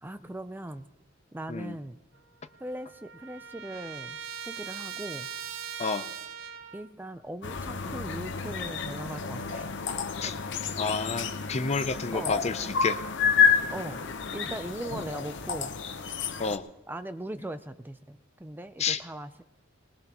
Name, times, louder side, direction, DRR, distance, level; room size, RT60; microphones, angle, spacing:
voice 1, 0.0-0.8 1.3-2.0 2.6-4.2 4.5-5.3 6.7-9.7 11.4-11.6 11.9-12.4 13.7-14.0 14.3-15.7 16.9-19.4, right 1 dB, 10° right, 10 dB, 0.4 m, -39 dB
Trumpet, 2.2-2.3 2.5-6.9, right 7 dB, 70° right, 0.8 m, -40 dB
voice 2, 5.8-6.1 10.2-10.3 10.8-13.0 16.4-16.7 18.8-19.0, left 4 dB, 35° left, 11 dB, 0.6 m, -30 dB
sound 1, 7.4-16.6, left 6 dB, 65° left, 0.8 m, -29 dB
21.0 x 20.0 x 3.0 m, 1.1 s
head